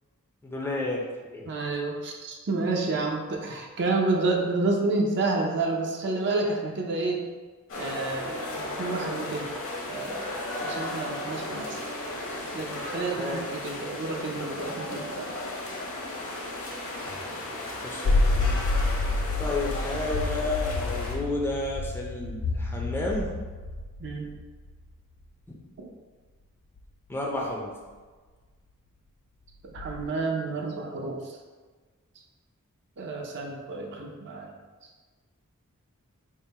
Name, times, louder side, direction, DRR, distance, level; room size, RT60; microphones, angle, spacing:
voice 1, 0.4-1.5 13.1-13.4 17.8-18.6 19.4-23.3 25.5-25.6 27.1-27.7, left 2 dB, 10° left, -2 dB, 0.4 m, -31 dB
voice 2, 1.5-7.2 7.8-10.3 10.6-11.8 12.5-15.3 24.0-24.3 25.8-25.9 29.7-31.2 33.0-34.5, right 3 dB, 50° right, 0 dB, 0.5 m, -29 dB
sound 1, 7.7-21.2, left 1 dB, 60° left, 0.9 m, -35 dB
sound 2, 18.0-24.8 26.8-26.9 29.8-30.0, left 2 dB, 85° left, 0.4 m, -28 dB
3.7 x 2.1 x 4.1 m, 1.4 s
head